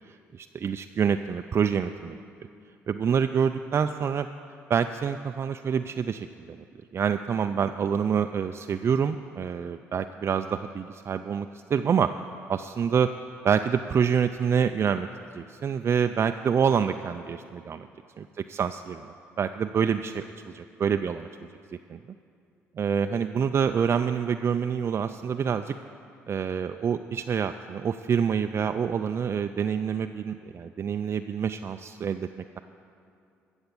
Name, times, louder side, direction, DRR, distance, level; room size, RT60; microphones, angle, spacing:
voice 1, 0.1-2.2 2.9-4.3 4.7-6.6 6.9-12.1 12.5-13.1 13.4-15.1 15.3-17.9 18.2-21.3 21.9-22.0 22.8-25.7 26.3-32.3, right 7 dB, 45° right, 8 dB, 0.4 m, -27 dB
13.0 x 7.1 x 6.9 m, 2.4 s
hypercardioid pair, 60°, 6 cm